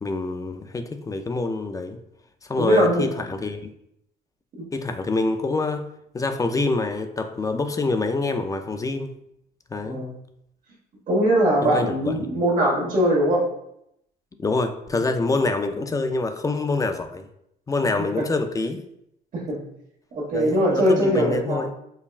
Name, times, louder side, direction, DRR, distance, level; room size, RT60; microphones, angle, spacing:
voice 1, 0.0-2.0 2.4-3.7 4.7-5.9 6.1-9.1 9.7-10.0 11.6-12.3 14.4-17.3 17.7-18.8 20.3-21.7, left 3 dB, 20° left, 7 dB, 0.4 m, -26 dB
voice 2, 2.6-3.0 4.6-4.7 9.8-10.1 11.1-13.4 18.2-18.3 19.3-19.6 20.1-21.7, right 1 dB, 50° right, -3 dB, 1.4 m, -21 dB
5.3 x 2.2 x 2.4 m, 0.78 s
cardioid pair, 90°, 18 cm